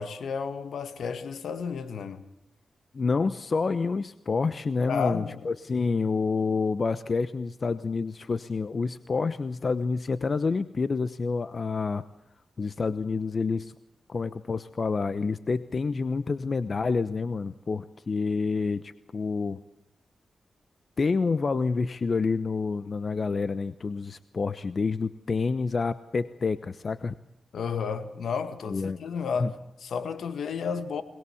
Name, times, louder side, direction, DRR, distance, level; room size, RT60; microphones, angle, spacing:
voice 1, 0.0-2.2 4.9-5.5 27.5-31.0, left 6 dB, 80° left, 1.9 m, -32 dB
voice 2, 2.9-12.0 12.6-13.7 14.1-19.6 21.0-27.1 28.7-29.0 29.4-29.5, left 4 dB, 55° left, 0.9 m, -28 dB
22.0 x 20.5 x 7.2 m
cardioid pair, 50°, 0 cm